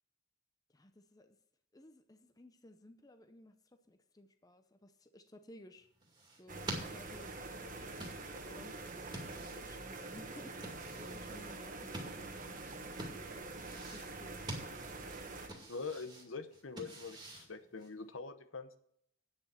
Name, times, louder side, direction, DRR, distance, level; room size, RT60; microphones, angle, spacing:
voice 1, 0.7-1.4 1.7-3.6 3.9-5.9 6.4-13.5 13.9-14.4, left 1 dB, 15° left, 8 dB, 0.6 m, -57 dB
sound 1, 5.8-18.1, right 1 dB, 20° right, 2.2 m, -49 dB
sound 2, 6.5-15.5, right 3 dB, 40° right, 1.3 m, -45 dB
voice 2, 15.7-18.8, left 4 dB, 70° left, 10 dB, 0.9 m, -44 dB
9.3 x 7.0 x 6.8 m, 0.70 s
head